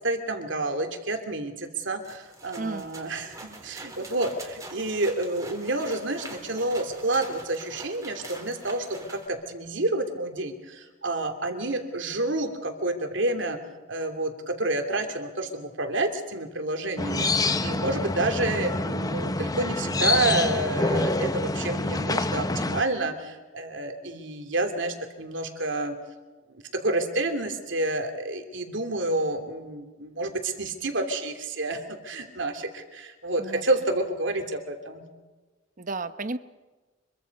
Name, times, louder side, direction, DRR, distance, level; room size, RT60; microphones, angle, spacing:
voice 1, 0.0-13.6 13.9-26.0 26.5-35.0, right 2 dB, 65° right, 5 dB, 2.9 m, -29 dB
sound 1, 2.0-9.3, right 2 dB, 15° right, 3.6 m, -44 dB
sound 2, 17.0-22.8, left 2 dB, 20° left, 0.7 m, -27 dB
voice 2, 35.8-36.4, right 3 dB, 40° right, 12 dB, 0.9 m, -32 dB
25.5 x 23.5 x 5.4 m, 1.2 s
head